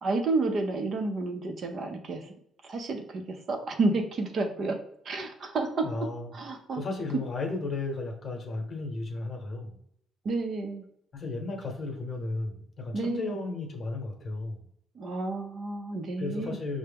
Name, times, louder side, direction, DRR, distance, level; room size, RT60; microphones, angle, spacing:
voice 1, 0.0-2.3 2.6-4.7 5.0-5.8 6.3-6.8 10.2-10.8 12.9-13.4 14.9-16.6, right 3 dB, 45° right, 4 dB, 0.6 m, -30 dB
voice 2, 5.8-6.3 6.8-9.8 11.1-14.6 16.2-16.8, left 3 dB, 40° left, 2 dB, 0.9 m, -34 dB
5.6 x 2.1 x 3.4 m, 0.71 s
cardioid pair, 125°, 0 cm